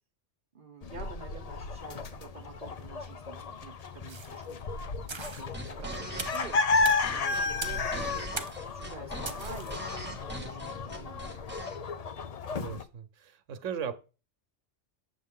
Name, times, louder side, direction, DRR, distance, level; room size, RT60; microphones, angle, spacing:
voice 1, 0.5-4.6 4.9-6.8 7.1-11.4, right 5 dB, 45° right, 6 dB, 1.1 m, -48 dB
sound 1, 0.8-12.8, left 4 dB, 45° left, 0.5 m, -33 dB
sound 2, 4.1-4.4 5.1-5.5 6.2-6.5 6.8-7.0 7.6-7.9 8.4-8.7 9.3-9.8, right 4 dB, 30° right, 0.6 m, -39 dB
sound 3, 5.3-11.8, right 2 dB, 10° right, 1.4 m, -41 dB
voice 2, 7.6-8.2 12.5-13.9, right 7 dB, 80° right, 11 dB, 1.2 m, -39 dB
8.0 x 7.1 x 3.7 m, 0.33 s
omnidirectional pair, 1.3 m